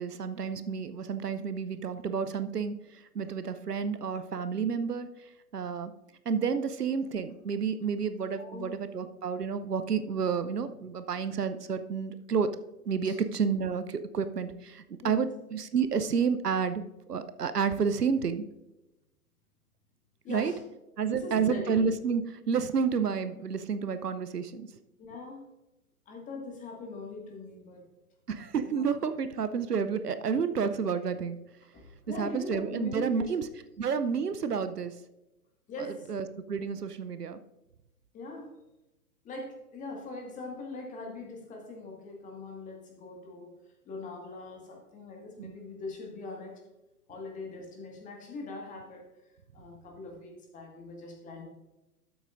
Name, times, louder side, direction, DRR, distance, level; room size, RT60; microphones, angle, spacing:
voice 1, 0.0-5.9 6.3-12.5 12.9-16.8 17.1-18.5 20.3-20.5 21.0-24.7 28.3-31.4 32.2-33.5 33.8-34.9 36.1-37.4 45.4-45.6, right 6 dB, 80° right, 11 dB, 0.8 m, -30 dB
voice 2, 8.4-8.8 13.0-13.2 15.0-15.2 20.2-20.6 21.0-21.8 25.0-25.4 26.1-27.9 28.6-28.9 31.7-33.3 35.7-36.1 38.1-38.5 39.2-43.5 43.9-46.6 47.1-49.1 49.5-51.4, left 3 dB, 15° left, 1 dB, 1.7 m, -41 dB
12.5 x 8.0 x 2.5 m, 0.98 s
figure-of-eight pair, 115°, 47 cm